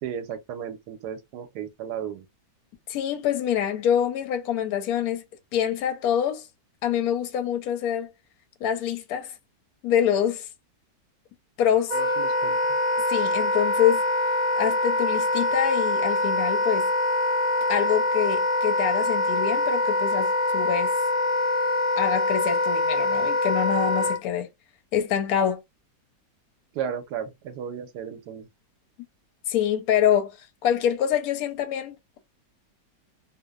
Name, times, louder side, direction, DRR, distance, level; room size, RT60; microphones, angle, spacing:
voice 1, 0.0-2.2 11.9-12.6 23.9-24.1 26.7-28.5, right 8 dB, 75° right, 1.1 m, -34 dB
voice 2, 2.9-5.2 5.5-6.5 6.8-8.1 8.6-9.3 9.8-10.5 11.6-12.0 13.1-14.1 14.6-16.9 17.7-20.9 22.0-24.5 24.9-25.6 29.5-30.3 30.6-32.2, left 9 dB, 70° left, 0.9 m, -25 dB
Wind instrument woodwind instrument, 11.9-24.2, left 2 dB, 40° right, 0.6 m, -24 dB
3.0 x 2.0 x 2.2 m
omnidirectional pair, 1.9 m